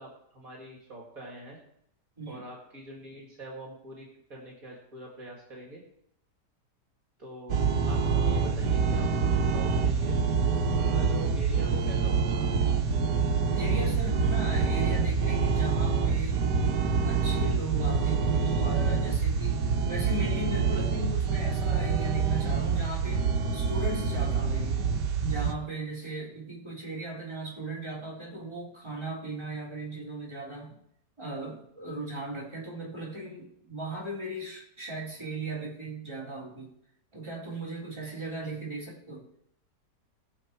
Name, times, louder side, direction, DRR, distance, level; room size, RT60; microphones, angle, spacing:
voice 1, 0.0-1.6 2.3-5.8 7.2-12.7, right 1 dB, 55° right, -2 dB, 2.8 m, -44 dB
sound 1, 7.5-25.5, right 5 dB, 80° right, 1.6 m, -26 dB
voice 2, 13.5-16.4 17.0-23.2 23.5-24.8 25.2-30.8 31.2-36.7 37.1-39.3, right 1 dB, 15° right, -5 dB, 3.7 m, -38 dB
20.5 x 7.1 x 4.6 m, 0.73 s
omnidirectional pair, 1.8 m